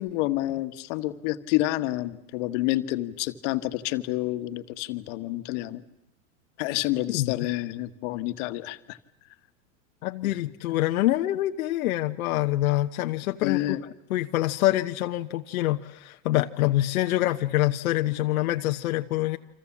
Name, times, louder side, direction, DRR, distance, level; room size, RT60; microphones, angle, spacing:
voice 1, 0.0-5.8 6.6-9.0 10.2-10.3 13.4-13.8, left 16 dB, 55° left, 9 dB, 1.5 m, -29 dB
voice 2, 10.0-13.8 14.1-19.4, left 15 dB, 80° left, 5 dB, 1.0 m, -25 dB
29.0 x 25.5 x 7.4 m, 0.87 s
supercardioid pair, 135°, 42 cm